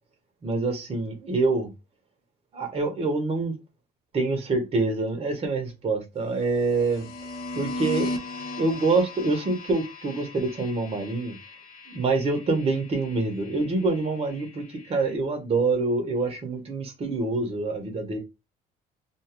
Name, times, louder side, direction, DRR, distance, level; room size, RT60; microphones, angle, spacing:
voice 1, 0.4-1.7 2.5-3.5 4.1-7.1 7.5-8.2 8.6-11.3 11.9-18.2, right 3 dB, 35° right, 0.9 m, -26 dB
sound 1, 6.3-15.1, left 2 dB, 60° left, 0.7 m, -38 dB
2.5 x 2.4 x 2.9 m
cardioid pair, 110°, 17 cm